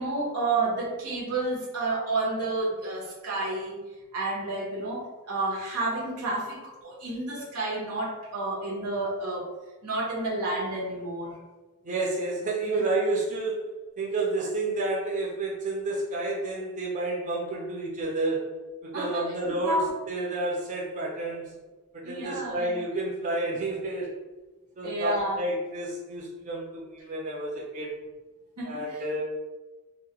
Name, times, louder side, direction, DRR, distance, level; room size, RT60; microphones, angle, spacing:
voice 1, 0.0-3.8 4.1-9.5 9.8-11.3 12.7-12.8 18.9-19.9 22.0-22.8 24.8-25.4 28.6-29.0, right 2 dB, 90° right, -3 dB, 0.8 m, -30 dB
voice 2, 11.8-13.7 14.0-21.6 21.9-24.1 24.8-27.9 28.6-29.2, right 2 dB, 35° right, -4 dB, 0.4 m, -30 dB
2.3 x 2.0 x 2.8 m, 1.2 s
head